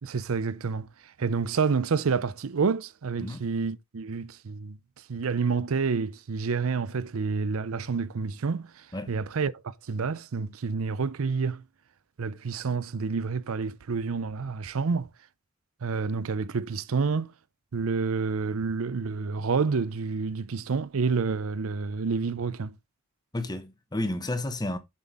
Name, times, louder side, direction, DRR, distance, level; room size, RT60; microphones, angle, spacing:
voice 1, 0.0-4.8 5.1-11.6 12.2-15.1 15.8-17.3 17.7-22.8, right 5 dB, 70° right, 0.5 m, -29 dB
voice 2, 23.3-24.8, left 1 dB, 20° left, 1.0 m, -31 dB
7.4 x 5.7 x 3.6 m
head